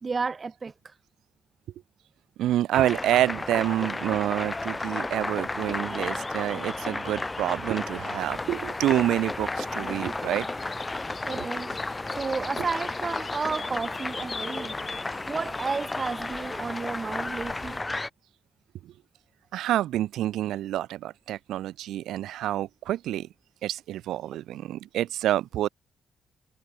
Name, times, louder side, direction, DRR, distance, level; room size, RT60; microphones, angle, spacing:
voice 1, 0.0-1.0 11.2-14.8 15.3-17.8, right 4 dB, 40° right, 2.1 m, -32 dB
voice 2, 2.4-10.5 11.4-11.5 18.8-18.9 19.5-23.3 23.6-25.7, right 13 dB, 65° right, 1.5 m, -28 dB
sound 1, 2.7-18.1, left 2 dB, 20° left, 1.7 m, -33 dB
sound 2, 8.2-17.8, left 5 dB, 40° left, 2.4 m, -43 dB
hypercardioid pair, 40°, 0 cm